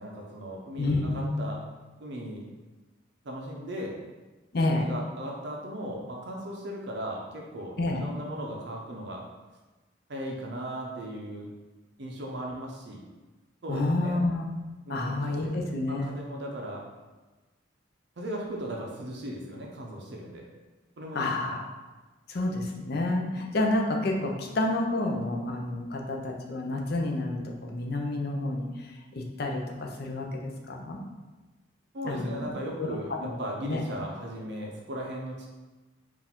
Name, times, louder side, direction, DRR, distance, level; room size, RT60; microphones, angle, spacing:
voice 1, 0.0-1.6 2.0-2.5 3.2-3.9 4.7-9.2 10.1-11.5 12.0-13.0 13.6-14.2 14.9-15.5 15.9-16.9 18.2-20.4 21.0-21.6 31.9-35.5, equal, 55° right, -1 dB, 0.6 m, -37 dB
voice 2, 0.8-1.3 4.5-4.9 7.8-8.0 13.7-14.5 14.9-16.2 21.1-21.6 22.3-31.0 32.0-32.5 32.8-33.3 33.6-33.8, left 2 dB, 50° left, 1 dB, 0.5 m, -29 dB
4.7 x 2.5 x 3.5 m, 1.2 s
head